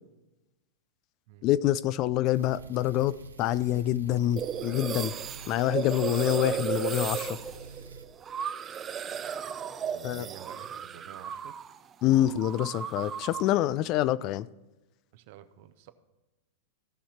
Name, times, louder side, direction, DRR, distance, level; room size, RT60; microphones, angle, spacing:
voice 1, 1.4-5.1 5.5-7.4 10.0-10.3 12.0-14.5, left 13 dB, 45° left, 18 dB, 0.4 m, -26 dB
sound 1, 2.3-8.1, right 4 dB, 90° right, 0.7 m, -48 dB
sound 2, 4.4-11.8 12.0-13.6, right 7 dB, 25° right, 0.5 m, -35 dB
voice 2, 9.9-11.6 15.1-15.9, right 11 dB, 55° right, 11 dB, 0.8 m, -50 dB
16.0 x 5.6 x 4.4 m, 1.0 s
hypercardioid pair, 105°, 0 cm